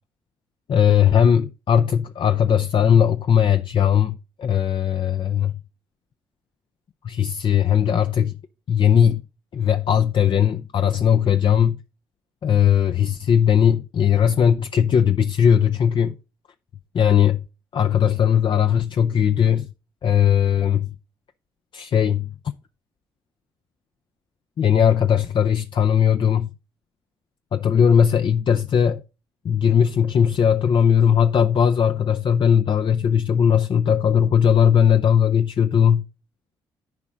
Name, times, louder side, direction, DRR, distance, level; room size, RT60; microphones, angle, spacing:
voice 1, 0.7-5.5 7.0-8.3 8.7-9.2 9.5-11.8 12.4-16.1 16.9-17.4 17.7-19.7 20.0-20.9 21.7-22.3 24.6-26.5 27.5-29.0 29.4-36.0, left 8 dB, 50° left, 0.5 m, -18 dB
10.5 x 4.9 x 4.1 m
hypercardioid pair, 50°, 11 cm